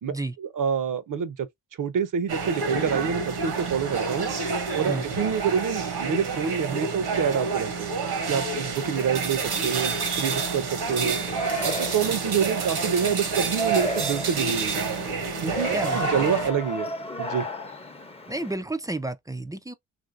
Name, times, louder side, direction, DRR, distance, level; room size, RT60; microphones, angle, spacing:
voice 1, 0.0-1.5 1.8-4.3 4.7-7.9 8.3-11.2 11.6-14.8 15.4-16.9 17.2-17.5, right 7 dB, 55° right, 0.6 m, -27 dB
sound 1, 2.3-16.5, right 4 dB, 75° right, 1.1 m, -29 dB
Yell, 10.8-18.5, right 1 dB, 15° left, 0.7 m, -32 dB
voice 2, 15.7-16.4 18.3-19.7, right 2 dB, 10° right, 0.3 m, -31 dB
2.9 x 2.6 x 2.6 m
supercardioid pair, 50°, 39 cm